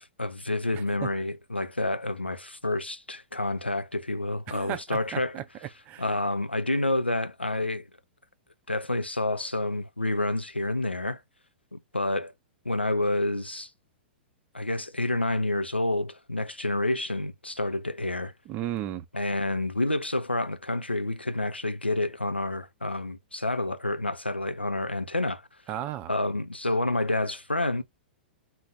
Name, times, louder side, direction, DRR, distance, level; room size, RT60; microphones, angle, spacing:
voice 1, 0.0-5.4 6.0-7.9 8.7-11.2 11.7-12.3 12.6-13.7 14.5-18.3 19.1-25.4 26.1-27.8, left 2 dB, 85° left, 0.6 m, -29 dB
voice 2, 0.7-1.1 4.5-5.4 5.9-6.0 18.5-19.0 25.7-26.1, right 12 dB, 25° right, 0.6 m, -34 dB
4.0 x 2.6 x 3.8 m
figure-of-eight pair, 105°, 6 cm